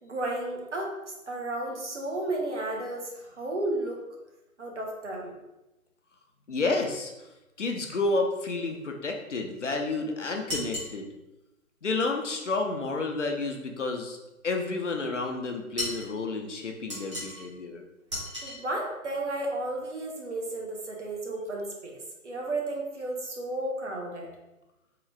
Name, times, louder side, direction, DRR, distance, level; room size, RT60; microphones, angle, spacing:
voice 1, 0.0-0.9 1.3-4.0 4.6-5.3 18.4-22.0 22.2-24.3, right 2 dB, 55° right, 0 dB, 0.9 m, -33 dB
voice 2, 6.5-7.1 7.6-11.1 11.8-14.2 14.4-17.8, left 3 dB, 55° left, 3 dB, 0.5 m, -30 dB
sound 1, 10.5-10.9 15.8-16.1 16.9-17.5 18.1-18.6, left 1 dB, 20° right, 0.9 m, -34 dB
3.7 x 2.3 x 3.2 m, 0.96 s
figure-of-eight pair, 150°, 43 cm